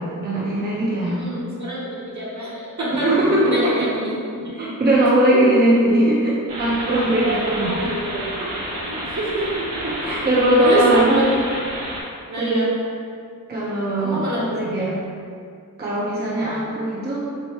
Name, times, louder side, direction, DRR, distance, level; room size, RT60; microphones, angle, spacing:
voice 1, 0.0-1.2 2.9-3.9 4.6-7.9 8.4-8.5 9.8-11.2 12.4-12.6 13.5-15.0 15.8-17.3, right 1 dB, 30° right, -7 dB, 0.6 m, -20 dB
voice 2, 1.0-3.1 3.5-4.7 5.3-5.4 5.9-6.0 7.2-8.3 8.9-10.3 10.6-11.2 12.3-12.7 14.0-14.5, right 1 dB, 55° right, -7 dB, 1.1 m, -26 dB
sound 1, 6.5-12.0, right 1 dB, 80° right, 0.9 m, -30 dB
3.2 x 2.5 x 2.9 m, 2.3 s
cardioid pair, 50°, 35 cm